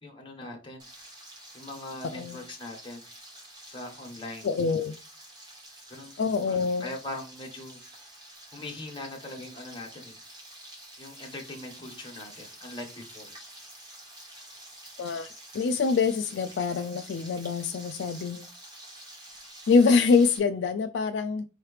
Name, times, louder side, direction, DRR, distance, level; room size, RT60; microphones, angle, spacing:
voice 1, 0.0-0.9 1.5-3.1 3.7-4.5 5.9-7.8 8.5-10.2 11.0-13.3, left 2 dB, 25° left, 1.4 m, -41 dB
Frying (food), 0.8-20.4, right 1 dB, 25° right, 1.3 m, -48 dB
voice 2, 4.4-4.9 6.2-6.9 15.0-18.4 19.7-21.4, left 5 dB, 65° left, 0.3 m, -25 dB
4.6 x 3.1 x 3.2 m
head